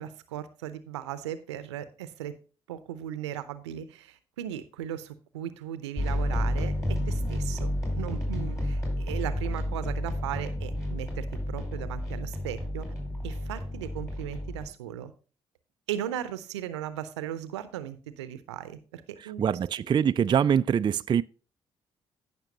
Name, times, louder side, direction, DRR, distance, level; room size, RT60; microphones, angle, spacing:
voice 1, 0.0-2.3 2.7-12.9 13.2-15.1 15.9-19.4, right 11 dB, 80° right, 0.7 m, -37 dB
sound 1, 6.0-14.7, left 1 dB, 20° left, 5.3 m, -31 dB
voice 2, 19.2-21.2, right 8 dB, 30° right, 0.3 m, -24 dB
15.0 x 5.8 x 2.8 m
figure-of-eight pair, 40°, 14 cm